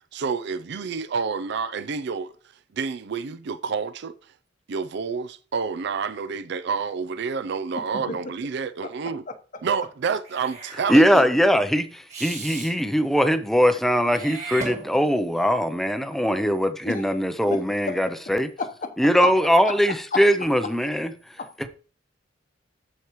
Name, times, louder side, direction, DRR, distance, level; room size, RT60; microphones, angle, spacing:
voice 1, 0.1-2.3 2.7-4.1 4.7-9.2 9.6-11.3, right 5 dB, 60° right, 0.5 m, -29 dB
Meow / Hiss, 10.2-10.8 12.1-12.7 14.1-15.3, right 3 dB, 35° right, 2.5 m, -36 dB
voice 2, 10.9-18.5 19.0-21.1, equal, ahead, 0.5 m, -21 dB
voice 3, 16.8-17.2 17.5-18.0 18.6-18.9 19.2-19.3 19.6-19.8 20.1-20.2 21.4-21.7, left 4 dB, 45° left, 0.9 m, -31 dB
14.0 x 4.7 x 3.0 m
head